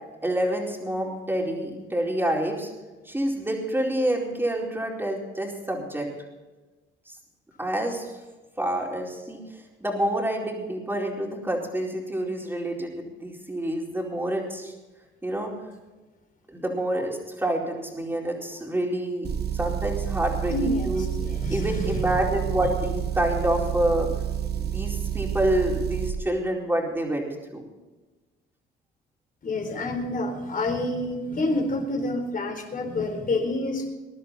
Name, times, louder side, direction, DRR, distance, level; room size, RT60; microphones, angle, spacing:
voice 1, 0.2-2.7 3.0-6.1 7.1-7.2 7.6-8.1 8.6-9.4 9.8-14.7 15.2-15.5 16.5-21.1 21.5-24.1 24.6-27.6, right 1 dB, 10° right, -1 dB, 4.5 m, -27 dB
Motor vehicle (road) / Engine, 19.2-26.2, right 9 dB, 55° right, 1.2 m, -29 dB
voice 2, 20.5-22.1 29.4-33.9, left 2 dB, 45° left, 4 dB, 4.2 m, -28 dB
21.5 x 11.0 x 4.3 m, 1.2 s
cardioid pair, 90°, 20 cm